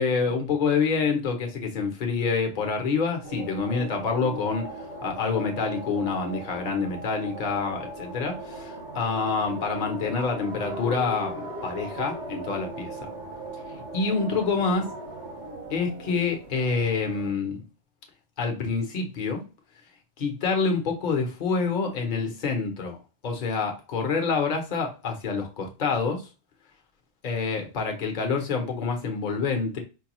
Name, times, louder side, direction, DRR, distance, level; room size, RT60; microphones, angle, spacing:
voice 1, 0.0-4.7 5.0-12.9 13.9-14.8 15.7-17.6 18.4-19.4 20.2-23.0 23.2-26.2 27.2-29.8, left 4 dB, 45° left, 0.9 m, -27 dB
sound 1, 3.2-17.3, right 1 dB, 80° right, 1.6 m, -38 dB
4.5 x 2.2 x 2.9 m
omnidirectional pair, 1.2 m